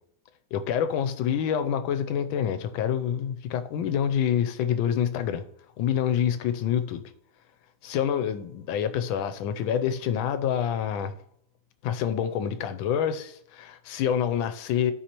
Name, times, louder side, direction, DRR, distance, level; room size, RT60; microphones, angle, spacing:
voice 1, 0.5-5.4 5.8-7.0 7.8-11.1 11.8-14.9, left 9 dB, 80° left, 1.4 m, -27 dB
13.0 x 4.9 x 2.9 m
omnidirectional pair, 2.2 m